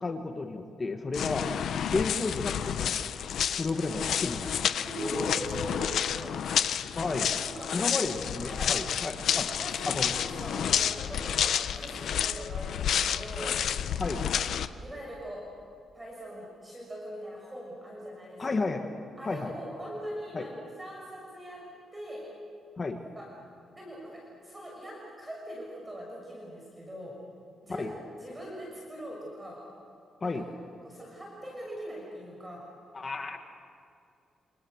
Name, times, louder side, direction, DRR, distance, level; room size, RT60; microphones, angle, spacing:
voice 1, 0.0-1.5 1.9-3.0 3.5-4.5 6.9-7.3 7.7-9.5 9.9-10.1 14.0-14.2 18.4-18.9 19.2-19.5 20.3-20.4 22.8-23.0 27.8-27.9 30.2-30.4 32.9-33.4, left 3 dB, 30° left, 4 dB, 1.7 m, -32 dB
sound 1, 1.1-14.7, left 8 dB, 70° left, 0.9 m, -30 dB
voice 2, 4.8-6.5 7.4-7.8 8.1-8.8 9.6-13.6 14.1-14.4 14.8-15.5 15.9-18.4 19.2-21.7 21.9-22.3 23.1-23.3 23.8-27.2 27.6-27.9 28.2-29.7 30.2-30.4 30.8-32.7, right 1 dB, 15° right, -3 dB, 6.4 m, -41 dB
29.0 x 28.0 x 6.6 m, 2.5 s
cardioid pair, 125°, 0 cm